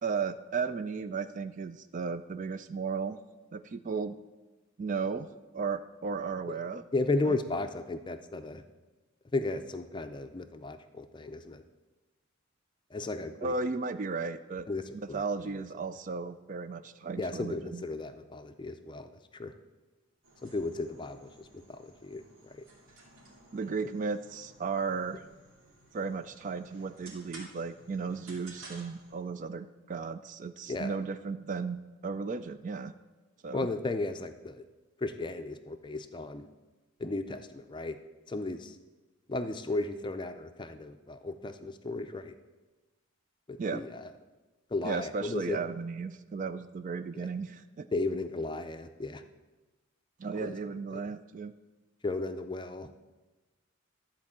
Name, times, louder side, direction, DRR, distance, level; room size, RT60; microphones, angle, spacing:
voice 1, 0.0-3.2 3.5-4.2 4.8-5.3 5.5-6.8 7.2-7.4 13.4-14.7 14.9-17.8 23.5-25.2 25.9-32.9 33.4-33.7 43.6-43.8 44.8-47.9 50.2-51.5, right 5 dB, 40° right, 11 dB, 0.3 m, -35 dB
voice 2, 6.9-8.6 9.3-11.6 12.9-13.5 14.7-15.2 17.2-19.5 20.4-22.6 30.7-31.0 33.5-34.6 35.0-36.5 37.0-38.0 38.3-38.8 39.3-42.3 43.5-44.1 44.7-45.6 47.1-47.3 47.9-49.2 50.4-50.5 52.0-52.9, left 2 dB, 20° left, 8 dB, 0.5 m, -35 dB
sound 1, 20.2-29.2, right 2 dB, 80° right, 2.5 m, -55 dB
12.0 x 4.5 x 7.3 m, 1.2 s
head